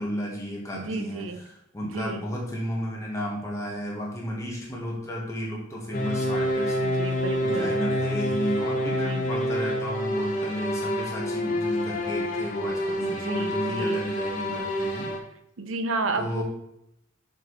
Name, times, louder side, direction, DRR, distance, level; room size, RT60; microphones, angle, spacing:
voice 1, 0.0-7.1 7.4-15.1 16.2-16.4, equal, 15° left, -2 dB, 1.5 m, -33 dB
voice 2, 0.7-1.4 1.8-2.2 6.8-7.8 9.0-9.2 13.0-14.0 15.6-16.4, right 3 dB, 80° right, 8 dB, 0.7 m, -32 dB
sound 1, 5.9-15.2, equal, 40° left, 1.0 m, -28 dB
6.6 x 4.9 x 4.1 m, 0.80 s
head